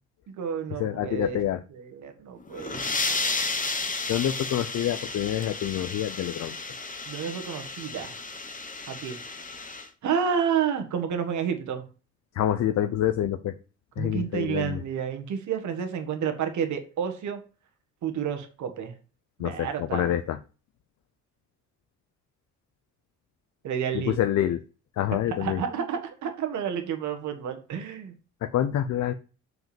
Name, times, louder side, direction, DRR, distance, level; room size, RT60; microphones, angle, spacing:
voice 1, 0.3-1.4 1.8-3.6 7.1-8.1 8.9-9.2 10.0-11.9 14.0-17.4 18.0-18.9 19.4-20.1 23.6-24.2 25.4-28.1, right 7 dB, 70° right, 6 dB, 1.7 m, -30 dB
voice 2, 0.8-1.6 4.1-6.6 12.3-13.5 14.0-14.8 19.4-20.4 23.9-24.6 25.0-25.6 28.4-29.1, left 11 dB, 65° left, 9 dB, 0.7 m, -27 dB
sound 1, 2.4-9.9, left 3 dB, 25° left, 1.1 m, -33 dB
6.4 x 5.2 x 5.2 m, 0.35 s
cardioid pair, 90°, 30 cm